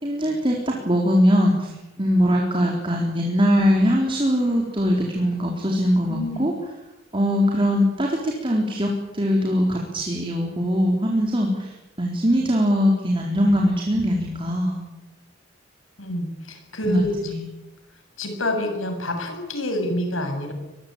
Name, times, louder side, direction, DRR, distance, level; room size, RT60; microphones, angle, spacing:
voice 1, 0.0-6.5 7.1-14.8 16.9-17.4, equal, 25° right, 0 dB, 3.9 m, -21 dB
voice 2, 6.1-6.5 16.0-17.1 18.2-20.5, left 1 dB, 85° left, 5 dB, 7.1 m, -27 dB
25.0 x 22.0 x 8.8 m, 0.99 s
head